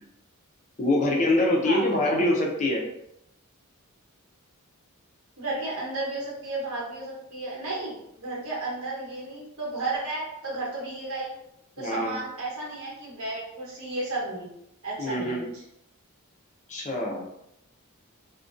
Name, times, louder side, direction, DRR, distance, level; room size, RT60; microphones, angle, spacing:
voice 1, 0.8-2.8 11.8-12.2 15.0-15.4 16.7-17.3, left 1 dB, 35° left, -1 dB, 0.4 m, -24 dB
voice 2, 1.6-2.2 5.4-11.3 11.8-14.5 14.8-15.6, right 2 dB, 80° right, -5 dB, 1.0 m, -33 dB
2.5 x 2.1 x 2.5 m, 0.79 s
head